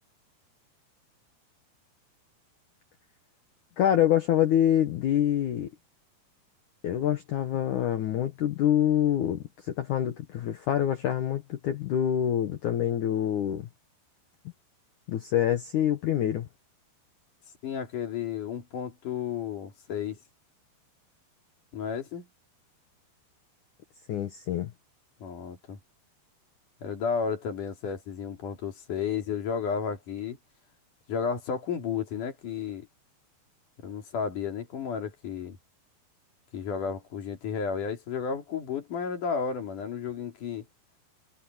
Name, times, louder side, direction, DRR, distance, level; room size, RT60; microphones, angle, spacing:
voice 1, 3.8-5.7 6.8-9.4 9.7-13.7 15.1-16.5 24.1-24.7, left 10 dB, 65° left, 2.0 m, -26 dB
voice 2, 17.6-20.2 21.7-22.3 25.2-25.8 26.8-30.4 31.1-32.9 33.8-35.6 36.5-40.7, left 6 dB, 50° left, 4.1 m, -32 dB
omnidirectional pair, 4.9 m